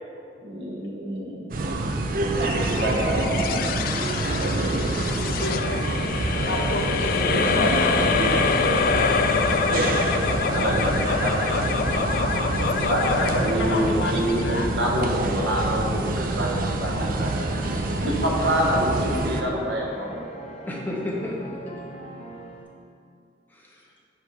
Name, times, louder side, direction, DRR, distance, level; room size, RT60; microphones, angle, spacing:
voice 1, 0.4-1.8 2.4-3.7 10.5-11.7 12.7-17.4 18.0-20.2, equal, 80° right, -2 dB, 1.3 m, -27 dB
sound 1, 1.5-19.4, right 2 dB, 50° right, 0.5 m, -26 dB
sound 2, 2.4-15.0, left 6 dB, 55° left, 0.3 m, -26 dB
voice 2, 5.2-5.6 6.4-8.8 13.1-14.1 14.4-14.7 17.7-17.8, left 2 dB, 80° left, 1 dB, 1.0 m, -30 dB
sound 3, 11.4-22.6, equal, 35° left, 1.1 m, -41 dB
voice 3, 20.7-21.6 23.5-23.9, left 1 dB, 10° left, -3 dB, 1.0 m, -34 dB
9.3 x 3.6 x 4.8 m, 2.4 s
head